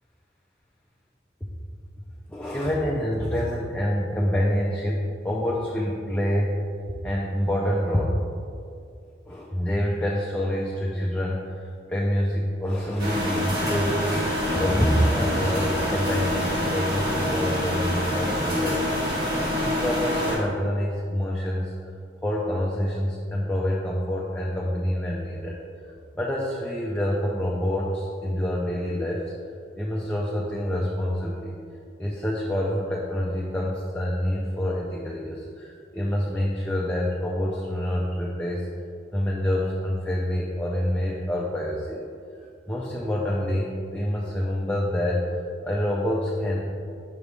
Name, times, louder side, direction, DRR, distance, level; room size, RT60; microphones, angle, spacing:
voice 1, 2.3-6.7 7.0-8.2 9.3-19.0 19.6-21.7 22.2-25.6 25.8-29.2 29.8-31.5 32.0-38.7 39.1-42.0 42.7-46.7, equal, 10° left, -4 dB, 0.4 m, -27 dB
sound 1, 13.0-20.4, left 1 dB, 55° right, 1.3 m, -26 dB
5.9 x 3.3 x 5.3 m, 2.3 s
head